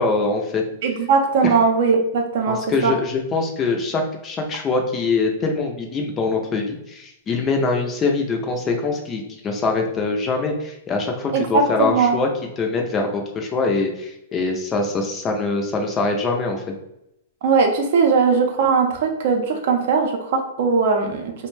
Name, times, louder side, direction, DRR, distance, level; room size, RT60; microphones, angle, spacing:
voice 1, 0.0-0.6 1.4-1.5 2.5-12.3 12.6-16.6, left 3 dB, 20° left, 2 dB, 0.4 m, -23 dB
voice 2, 0.8-2.9 11.3-12.2 17.4-21.3, right 5 dB, 60° right, 4 dB, 0.5 m, -19 dB
2.5 x 2.1 x 3.1 m, 0.84 s
hypercardioid pair, 150°, 0 cm